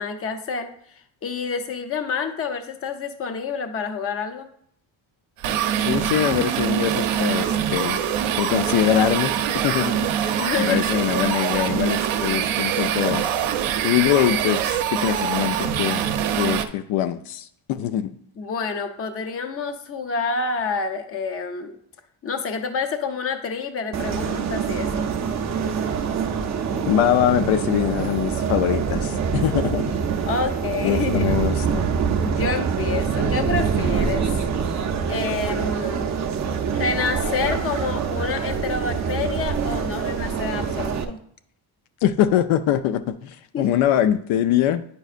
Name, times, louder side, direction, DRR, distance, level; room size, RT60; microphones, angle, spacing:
voice 1, 0.0-4.5 10.4-10.8 18.4-21.8 22.2-25.1 30.2-31.3 32.2-34.2 35.1-36.1 36.7-41.2 43.5-43.7, left 5 dB, 30° left, 0.5 m, -28 dB
sound 1, 5.4-16.7, right 9 dB, 85° right, 0.7 m, -24 dB
voice 2, 5.8-8.0 8.4-13.3 13.8-16.0 16.4-18.2 26.9-30.0 30.8-32.0 42.0-44.9, left 11 dB, 75° left, 0.5 m, -23 dB
sound 2, 23.9-41.0, right 6 dB, 35° right, 0.5 m, -25 dB
9.1 x 5.4 x 2.4 m
cardioid pair, 160°, 47 cm